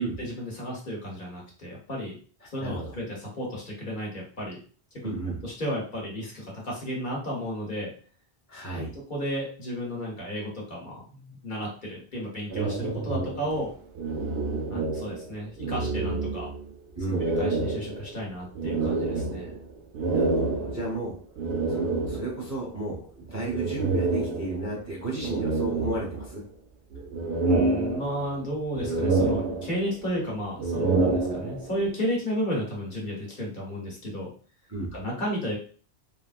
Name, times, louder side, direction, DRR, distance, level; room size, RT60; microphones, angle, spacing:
voice 1, 0.0-2.1 2.5-4.6 4.9-5.1 5.4-7.9 8.9-13.7 14.7-16.5 17.1-19.5 27.4-34.3 34.9-35.6, equal, 50° left, -3 dB, 1.1 m, -33 dB
voice 2, 2.6-2.9 5.0-5.4 8.5-8.9 16.9-17.3 20.1-21.2 21.7-26.4 34.7-34.9, right 2 dB, 20° right, -4 dB, 0.7 m, -33 dB
sound 1, 12.5-15.3 15.6-16.7 17.1-22.5 23.5-24.8 25.2-26.5 26.9-28.4 28.7-30.0 30.5-31.8, right 3 dB, 75° right, 0.8 m, -28 dB
3.3 x 2.4 x 2.4 m, 0.41 s
omnidirectional pair, 1.1 m